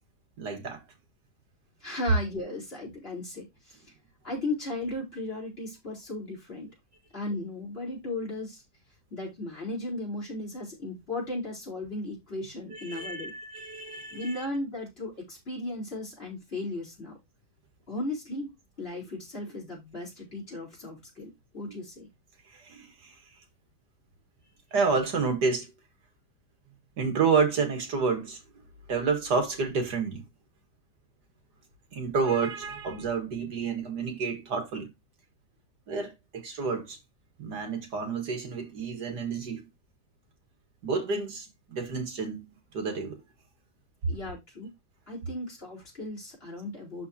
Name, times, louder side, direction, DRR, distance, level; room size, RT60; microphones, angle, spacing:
voice 1, 0.4-0.8 12.7-14.4 22.5-23.1 24.7-25.7 27.0-28.4 28.9-30.2 31.9-34.9 35.9-37.0 37.4-39.7 40.8-43.2, right 5 dB, 75° right, 2.4 m, -29 dB
voice 2, 1.8-3.9 4.2-6.7 7.1-8.6 9.1-13.3 14.1-17.1 17.9-18.5 18.8-22.1 44.1-44.7 45.1-47.1, left 2 dB, 35° left, 4.4 m, -36 dB
12.0 x 4.1 x 2.8 m
omnidirectional pair, 1.8 m